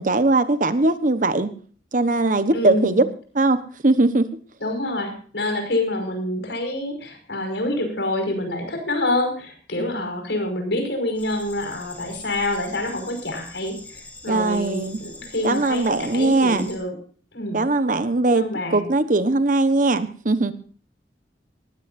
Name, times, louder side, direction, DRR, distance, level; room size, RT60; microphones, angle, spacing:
voice 1, 0.0-1.5 1.9-3.0 3.3-4.3 9.8-10.0 14.2-15.0 15.4-16.7 17.5-20.5, right 2 dB, 50° right, 11 dB, 1.1 m, -20 dB
voice 2, 2.5-3.0 4.6-17.0 17.3-17.6 18.3-18.8, left 1 dB, 85° left, 5 dB, 5.5 m, -27 dB
sound 1, 11.1-16.8, left 2 dB, 10° left, 3.1 m, -43 dB
20.0 x 15.5 x 2.6 m, 0.43 s
head